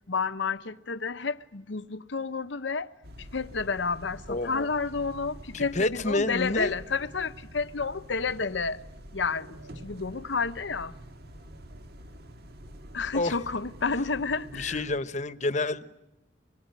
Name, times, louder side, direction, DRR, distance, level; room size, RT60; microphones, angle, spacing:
voice 1, 0.1-2.9 3.2-8.8 9.1-9.6 9.8-11.0 12.9-14.8, left 4 dB, 80° left, 1.0 m, -30 dB
sound 1, 3.0-15.0, equal, 60° right, 1.8 m, -47 dB
voice 2, 4.3-4.7 5.5-6.7 13.1-13.3 14.5-15.9, left 2 dB, 40° left, 1.1 m, -29 dB
26.0 x 22.5 x 9.3 m
head